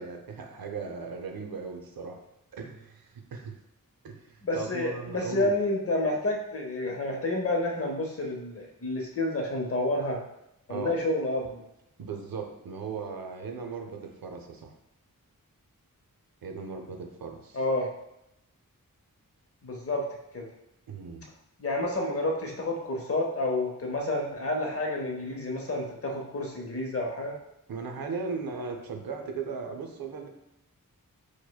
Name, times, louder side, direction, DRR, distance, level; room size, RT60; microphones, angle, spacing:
voice 1, 0.0-2.2 2.5-3.6 4.0-5.6 10.7-11.0 12.0-14.7 16.4-17.6 20.9-21.3 27.7-30.3, right 5 dB, 85° right, 3 dB, 0.5 m, -37 dB
voice 2, 4.4-10.2 10.7-11.6 17.5-17.9 19.6-20.1 20.3-20.5 21.6-27.4, left 2 dB, 40° left, 1 dB, 0.7 m, -29 dB
4.8 x 2.1 x 2.2 m, 0.83 s
wide cardioid pair, 80°, 34 cm